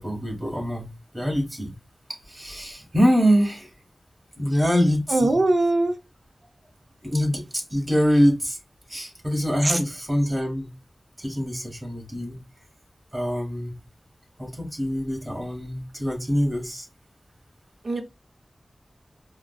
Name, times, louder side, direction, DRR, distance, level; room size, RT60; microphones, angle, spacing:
voice 1, 0.0-1.7 2.1-3.7 4.4-5.4 7.0-8.6 8.9-10.7 11.2-12.4 13.1-13.8 14.4-16.9, equal, 20° right, 1.6 m, -24 dB
voice 2, 5.1-6.0 9.6-9.8 17.8-18.0, right 2 dB, 60° right, 0.7 m, -21 dB
4.8 x 2.2 x 2.3 m
wide cardioid pair, 70°, 0 cm